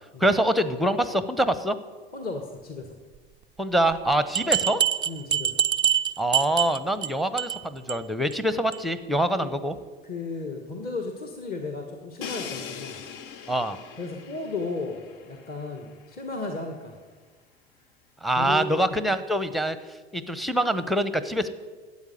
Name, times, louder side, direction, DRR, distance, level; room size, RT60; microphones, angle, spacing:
voice 1, 0.2-1.8 3.6-4.8 6.2-9.7 13.5-13.8 18.2-19.8 20.1-21.5, right 1 dB, ahead, 13 dB, 0.8 m, -25 dB
voice 2, 2.1-2.9 5.0-5.6 9.4-9.5 10.0-13.0 14.0-17.0 18.3-18.9, left 3 dB, 30° left, 4 dB, 1.7 m, -34 dB
sound 1, 4.3-7.1 7.4-7.6 7.9-8.0 8.3-8.4 8.7-8.8, right 9 dB, 15° right, 0.3 m, -24 dB
Crash cymbal, 12.2-16.0, left 7 dB, 60° left, 0.9 m, -40 dB
13.0 x 8.6 x 9.4 m, 1.4 s
figure-of-eight pair, 75°, 31 cm